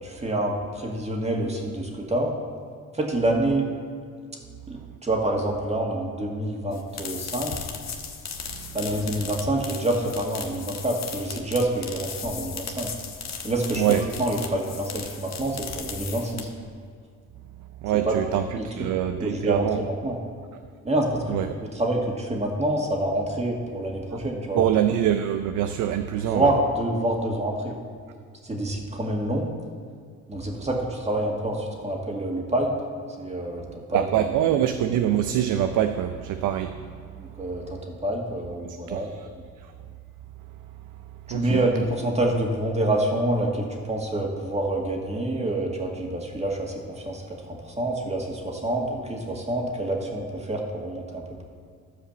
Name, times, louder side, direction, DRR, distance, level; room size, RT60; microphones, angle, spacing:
voice 1, 0.0-2.3 2.9-3.7 4.7-7.5 8.7-12.9 13.4-16.5 18.1-18.2 18.6-18.7 19.2-20.2 20.8-24.7 26.3-27.8 28.4-29.5 30.3-32.7 33.2-34.0 34.5-34.6 37.2-39.1 39.4-39.5 41.3-51.4, right 1 dB, 20° right, 0 dB, 2.0 m, -27 dB
sound 1, 6.7-16.7, left 6 dB, 60° left, 1.4 m, -36 dB
voice 2, 13.8-14.1 17.8-19.8 21.3-21.5 24.5-26.5 33.9-37.1 38.9-39.3 41.3-41.6, right 10 dB, 85° right, 8 dB, 0.6 m, -24 dB
13.0 x 4.9 x 7.1 m, 2.1 s
cardioid pair, 90°, 30 cm